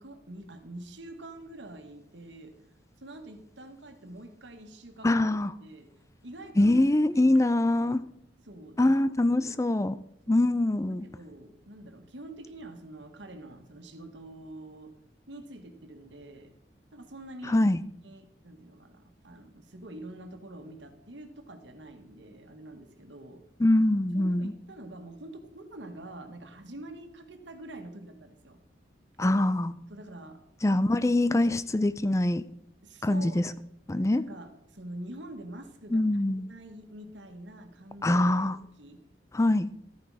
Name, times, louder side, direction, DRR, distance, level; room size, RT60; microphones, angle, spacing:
voice 1, 0.0-2.5 3.0-5.2 5.6-5.9 6.2-6.8 7.1-7.4 7.8-8.0 8.4-8.9 9.3-9.6 10.3-10.5 11.0-14.9 15.3-16.5 16.9-17.6 18.0-23.4 24.1-28.6 29.9-30.4 30.7-30.8 32.8-33.4 34.1-36.0 36.5-38.2 38.5-39.0, right 1 dB, 75° right, 6 dB, 1.7 m, -46 dB
voice 2, 5.0-5.5 6.6-8.0 8.8-10.0 10.3-11.0 17.5-17.8 23.6-24.5 29.2-29.8 30.6-32.5 33.0-33.5 33.9-34.2 35.9-36.5 38.0-38.6 39.3-39.7, left 1 dB, 15° left, 15 dB, 0.4 m, -24 dB
13.0 x 9.8 x 4.8 m, 0.77 s
head